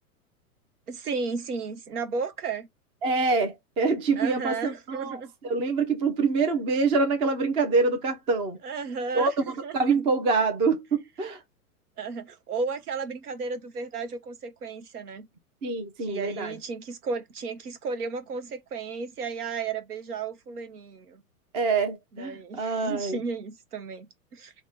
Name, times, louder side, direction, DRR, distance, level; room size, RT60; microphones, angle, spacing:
voice 1, 0.9-2.7 4.2-5.3 8.6-10.1 12.0-15.3 16.0-21.2 22.1-24.5, right 4 dB, 85° right, 0.9 m, -34 dB
voice 2, 3.0-8.6 9.1-9.3 9.7-11.4 15.6-16.5 21.5-23.2, right 4 dB, 15° right, 0.3 m, -25 dB
3.0 x 2.1 x 3.5 m
hypercardioid pair, 115°, 45 cm